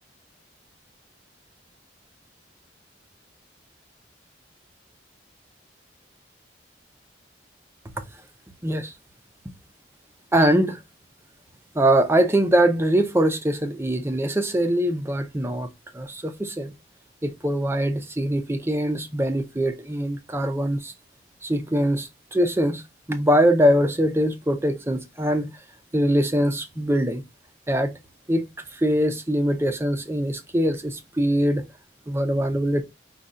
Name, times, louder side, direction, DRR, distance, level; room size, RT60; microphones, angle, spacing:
voice 1, 8.6-8.9 10.3-10.8 11.7-15.7 15.9-16.7 17.2-20.9 21.4-22.8 23.1-25.5 25.9-27.2 27.7-28.0 28.3-28.5 28.7-31.7 32.1-32.8, equal, 15° right, 0.5 m, -22 dB
5.4 x 2.3 x 3.7 m
head